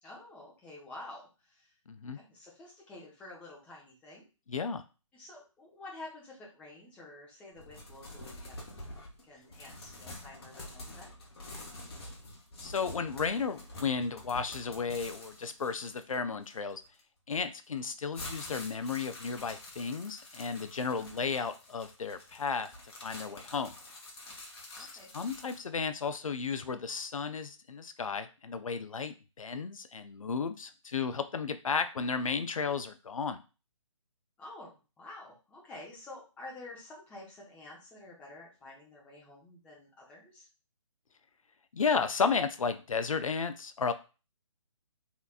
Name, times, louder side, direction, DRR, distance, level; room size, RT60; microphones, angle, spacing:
voice 1, 0.0-1.8 2.1-4.3 5.1-11.1 21.0-21.1 24.8-25.1 34.4-34.7 35.0-40.5, left 2 dB, 5° left, -4 dB, 0.7 m, -49 dB
voice 2, 1.9-2.2 4.5-4.8 12.6-16.8 17.3-22.7 23.0-23.7 24.8-24.9 25.1-33.4 41.7-43.9, left 5 dB, 85° left, 10 dB, 0.4 m, -33 dB
sound 1, 7.5-17.0 17.6-25.7, left 1 dB, 50° left, 0.9 m, -47 dB
3.2 x 2.9 x 2.3 m, 0.32 s
figure-of-eight pair, 145°, 17 cm